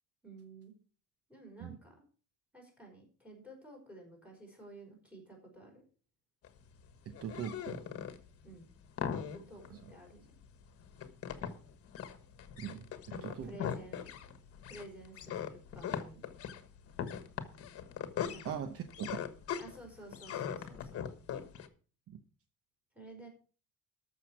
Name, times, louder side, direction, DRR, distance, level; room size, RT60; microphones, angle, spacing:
voice 1, 0.2-0.7 1.3-2.0 2.5-5.8 8.4-8.7 9.1-10.4 13.1-14.0 14.7-16.2 18.3-18.6 19.6-21.0 22.9-23.3, right 2 dB, 5° right, -1 dB, 5.1 m, -52 dB
sound 1, 6.4-21.7, left 8 dB, 50° left, 1.4 m, -41 dB
voice 2, 7.1-7.8 9.7-9.8 12.6-12.8 13.2-13.5 18.4-19.3 22.1-22.2, right 8 dB, 50° right, 9 dB, 0.9 m, -40 dB
13.5 x 6.5 x 6.0 m, 0.38 s
cardioid pair, 175°, 31 cm